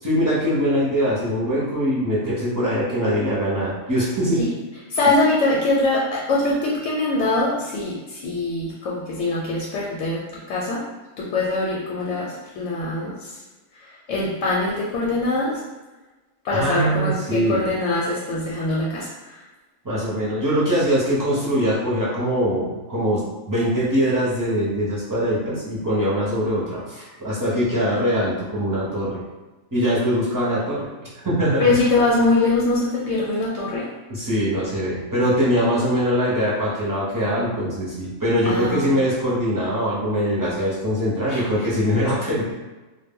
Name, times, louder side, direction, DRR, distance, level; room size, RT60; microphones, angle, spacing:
voice 1, 0.0-4.4 16.5-17.7 19.8-23.2 23.5-29.2 29.7-30.9 31.2-31.8 34.1-42.5, equal, 20° right, -8 dB, 0.6 m, -22 dB
voice 2, 4.9-10.8 11.2-13.3 13.9-15.6 16.4-19.4 31.6-33.9 38.4-39.0 41.3-41.4, left 2 dB, 85° left, -5 dB, 0.9 m, -23 dB
2.2 x 2.1 x 3.5 m, 1.2 s
omnidirectional pair, 1.2 m